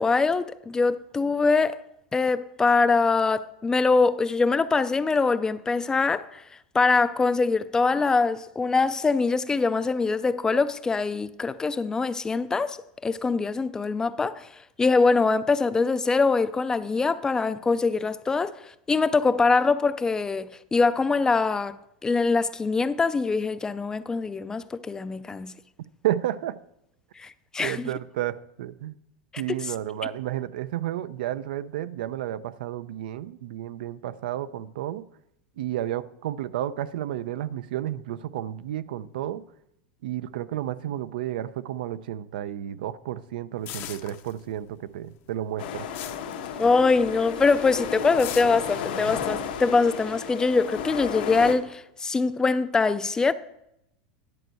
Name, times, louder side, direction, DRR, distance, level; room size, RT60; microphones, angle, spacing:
voice 1, 0.0-1.8 2.1-6.4 6.7-12.8 13.0-14.5 14.8-18.6 18.9-21.8 22.0-25.5 27.2-27.9 29.6-29.7 46.6-53.3, left 4 dB, 15° left, 0.4 m, -23 dB
voice 2, 26.0-26.6 27.6-28.9 29.4-35.0 35.6-39.4 40.0-45.9, right 12 dB, 85° right, 0.5 m, -31 dB
sound 1, 43.7-44.8 45.1-47.1 47.4-47.7 48.2-50.1, left 13 dB, 45° left, 0.7 m, -40 dB
sound 2, 45.6-51.5, left 7 dB, 85° left, 1.4 m, -33 dB
10.5 x 4.5 x 7.6 m
supercardioid pair, 135°, 5 cm